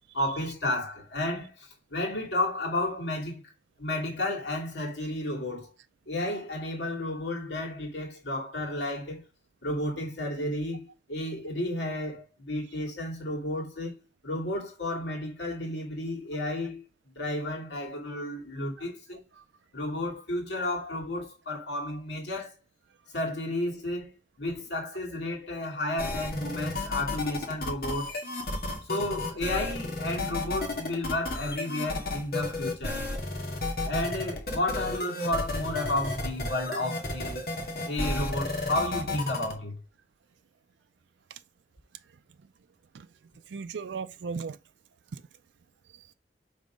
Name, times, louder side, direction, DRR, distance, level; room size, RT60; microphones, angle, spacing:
voice 1, 0.1-3.4 3.8-5.7 6.1-9.2 9.6-14.0 14.2-16.9 17.2-19.2 19.7-22.5 23.1-24.1 24.4-28.2 28.9-33.0 33.8-37.4 37.9-39.8, left 1 dB, 75° left, 2.7 m, -32 dB
sound 1, 26.0-39.5, left 2 dB, 55° left, 1.8 m, -32 dB
voice 2, 43.5-44.6 45.1-45.2 45.9-46.1, right 5 dB, 80° right, 0.4 m, -37 dB
5.4 x 3.9 x 5.0 m
head